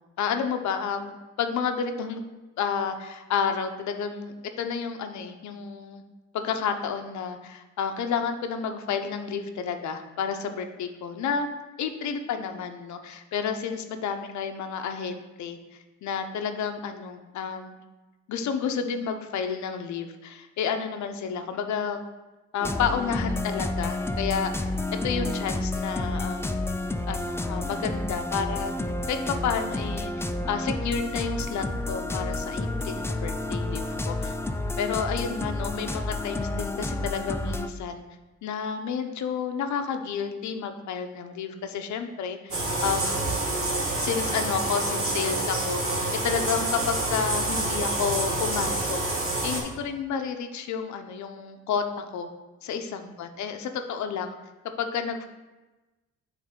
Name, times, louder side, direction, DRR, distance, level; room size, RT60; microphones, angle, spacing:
voice 1, 0.2-2.2 2.6-6.0 6.3-11.5 11.8-17.8 18.3-22.0 22.5-24.7 25.0-26.6 27.1-28.7 29.1-30.1 30.5-34.4 34.8-38.0 38.4-43.2 44.0-46.0 46.2-52.3 52.6-54.3 54.8-55.3, left 6 dB, 70° left, 7 dB, 0.7 m, -31 dB
sound 1, 22.6-37.7, left 2 dB, 10° left, 0.3 m, -30 dB
sound 2, 42.5-49.6, right 2 dB, 50° right, 1.9 m, -27 dB
8.6 x 3.3 x 3.7 m, 1.1 s
cardioid pair, 90°, 30 cm